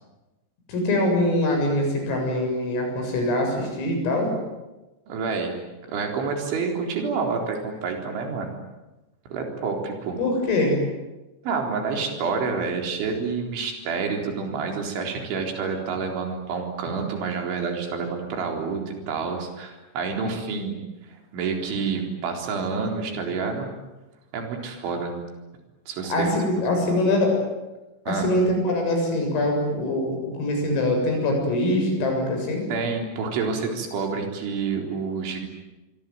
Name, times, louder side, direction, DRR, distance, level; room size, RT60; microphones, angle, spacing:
voice 1, 0.7-4.3 10.2-10.8 26.1-27.4 28.1-32.6, left 1 dB, 85° left, 3 dB, 10.0 m, -23 dB
voice 2, 5.1-5.6 5.9-8.5 9.3-10.2 11.4-23.7 24.3-25.1 25.9-26.6 28.1-28.3 32.7-35.4, right 5 dB, 70° right, 3 dB, 6.4 m, -28 dB
27.5 x 22.5 x 9.5 m, 1.1 s
omnidirectional pair, 5.8 m